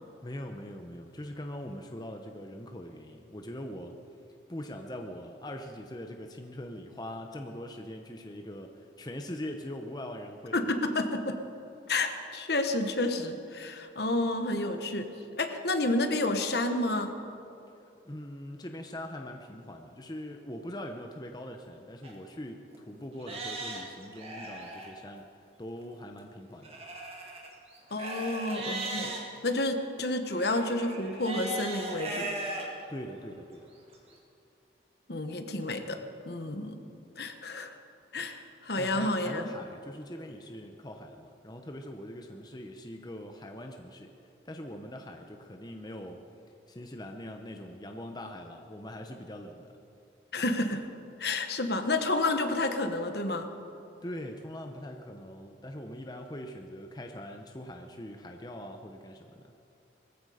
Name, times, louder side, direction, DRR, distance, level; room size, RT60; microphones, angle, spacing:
voice 1, 0.2-4.0 4.5-10.8 18.0-25.2 25.6-26.8 32.9-33.7 38.7-44.1 44.4-46.2 46.7-49.7 54.0-59.5, left 1 dB, 20° left, 4 dB, 0.8 m, -42 dB
voice 2, 10.5-11.4 11.9-15.1 15.4-17.1 27.9-29.1 29.4-32.3 35.1-36.8 37.2-37.8 38.1-39.4 50.3-50.8 51.2-53.5, left 2 dB, 60° left, 7 dB, 1.2 m, -30 dB
Livestock farm animals working animals, 22.0-22.1 22.7-22.8 23.2-24.9 26.6-29.2 30.3-32.7 33.2-33.3 33.9-34.0, right 2 dB, 35° right, 2.2 m, -38 dB
19.5 x 15.0 x 5.0 m, 2.7 s
head